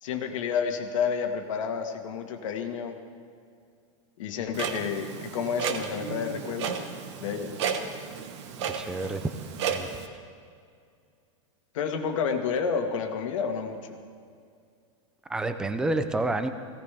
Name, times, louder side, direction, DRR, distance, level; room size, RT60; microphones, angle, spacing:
voice 1, 0.0-3.0 4.2-6.8 7.2-7.5 11.7-14.0, left 6 dB, 70° left, 5 dB, 1.6 m, -30 dB
Clock, 4.5-10.1, right 7 dB, 55° right, 1.1 m, -33 dB
voice 2, 8.7-9.3 9.7-9.9 15.3-16.5, right 2 dB, 5° right, 9 dB, 0.4 m, -29 dB
18.0 x 16.5 x 3.4 m, 2.3 s
supercardioid pair, 170°, 17 cm